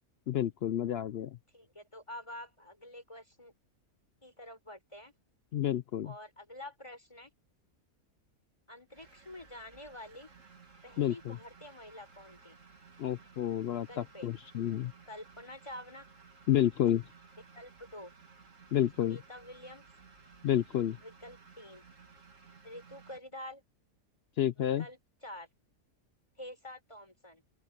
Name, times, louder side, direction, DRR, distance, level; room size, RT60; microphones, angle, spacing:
voice 1, 0.3-1.4 5.5-6.1 11.0-11.4 13.0-14.9 16.5-17.0 18.7-19.2 20.4-21.0 24.4-24.8, left 11 dB, 70° left, 0.6 m, -30 dB
voice 2, 1.5-3.5 4.2-5.1 6.0-7.3 8.7-10.3 10.8-12.6 13.7-14.3 15.1-16.1 17.5-18.1 19.0-19.9 21.0-21.8 22.6-23.6 24.6-25.5 26.4-27.4, left 1 dB, 20° left, 4.7 m, -48 dB
sound 1, 8.9-23.2, right 5 dB, 55° right, 2.6 m, -57 dB
open air
omnidirectional pair, 1.6 m